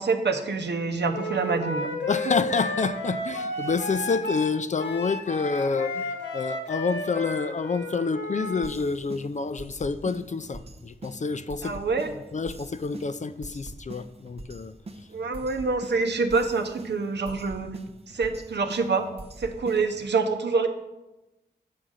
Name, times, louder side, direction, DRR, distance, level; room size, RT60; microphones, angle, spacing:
voice 1, 0.0-1.9 11.6-12.1 15.1-17.7 18.1-19.1 19.4-20.7, right 4 dB, 75° right, 0.8 m, -26 dB
Wind instrument woodwind instrument, 1.1-8.7, left 1 dB, 85° left, 1.2 m, -32 dB
voice 2, 2.1-11.8 12.3-14.7, left 4 dB, 40° left, 0.4 m, -28 dB
sound 1, 8.6-20.1, right 2 dB, 35° right, 0.6 m, -44 dB
8.5 x 3.9 x 6.3 m
wide cardioid pair, 65°, 18 cm